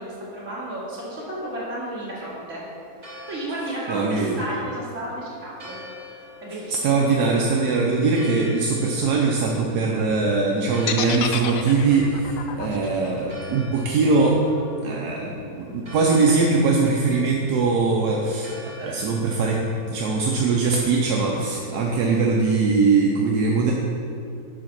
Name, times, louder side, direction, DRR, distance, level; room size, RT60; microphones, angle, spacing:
voice 1, 0.0-2.6 3.0-6.1 6.4-6.9, right 1 dB, 50° right, -8 dB, 2.6 m, -33 dB
Church bell, 2.6-22.1, left 2 dB, 30° right, 1.1 m, -46 dB
voice 2, 3.9-4.4 6.8-14.4 14.8-23.7, right 4 dB, 80° right, -1 dB, 1.3 m, -21 dB
sound 1, 10.9-14.9, left 8 dB, 70° left, 0.9 m, -31 dB
7.3 x 5.1 x 6.0 m, 2.6 s
omnidirectional pair, 1.6 m